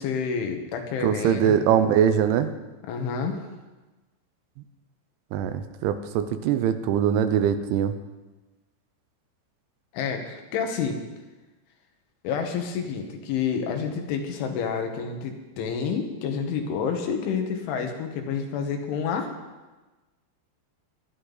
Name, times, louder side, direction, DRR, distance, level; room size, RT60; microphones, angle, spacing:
voice 1, 0.0-1.6 2.9-3.4 9.9-11.0 12.2-19.3, left 6 dB, 90° left, 4 dB, 3.9 m, -29 dB
voice 2, 1.0-2.5 5.3-7.9, right 9 dB, 85° right, 10 dB, 3.2 m, -22 dB
20.0 x 12.5 x 4.1 m, 1.2 s
omnidirectional pair, 5.3 m